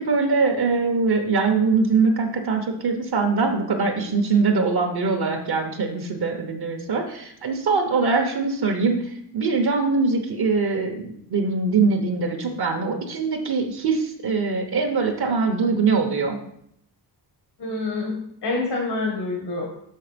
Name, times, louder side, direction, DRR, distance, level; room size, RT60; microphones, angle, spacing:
voice 1, 0.0-16.4, right 4 dB, 65° right, 3 dB, 1.1 m, -22 dB
voice 2, 17.6-19.6, left 3 dB, 85° left, -1 dB, 1.8 m, -27 dB
6.4 x 5.6 x 5.1 m, 0.70 s
wide cardioid pair, 140°, 41 cm